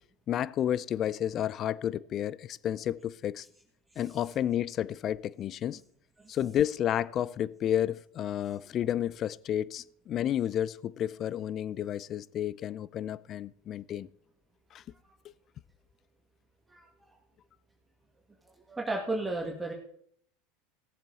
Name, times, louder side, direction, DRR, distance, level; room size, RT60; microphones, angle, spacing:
voice 1, 0.3-3.5 4.0-5.8 6.3-14.1 14.7-14.8 15.2-15.3, left 10 dB, 40° left, 0.5 m, -31 dB
voice 2, 16.7-17.1 18.7-19.7, right 2 dB, 10° right, 2.2 m, -34 dB
18.0 x 7.5 x 4.1 m
hypercardioid pair, 80°, 0 cm